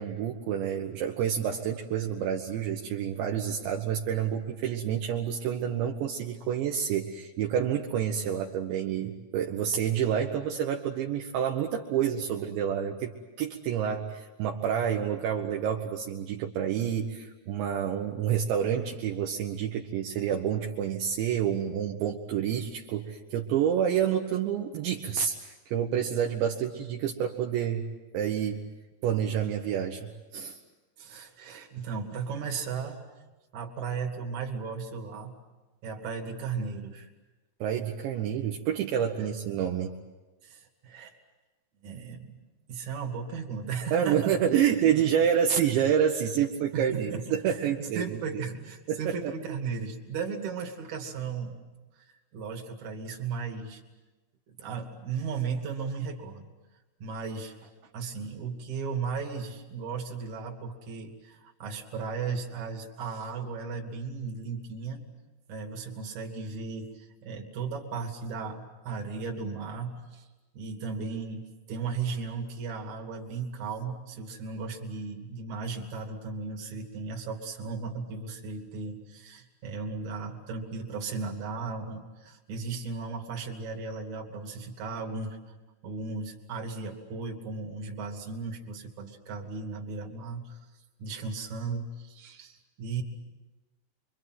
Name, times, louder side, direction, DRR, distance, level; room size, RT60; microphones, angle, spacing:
voice 1, 0.0-13.1 13.4-27.8 28.1-28.6 29.0-30.6 37.6-39.9 43.9-48.2 48.9-49.3, right 9 dB, 70° right, 1 dB, 3.3 m, -28 dB
voice 2, 31.0-33.0 33.5-35.4 35.8-37.1 39.2-39.3 40.4-41.1 41.8-42.4 42.7-44.8 46.7-51.6 51.9-53.8 54.6-56.5 57.0-65.0 65.5-70.3 70.5-85.4 85.8-90.7 91.0-93.0, right 5 dB, 45° right, 1 dB, 3.4 m, -36 dB
28.5 x 24.5 x 7.8 m, 1.1 s
omnidirectional pair, 5.7 m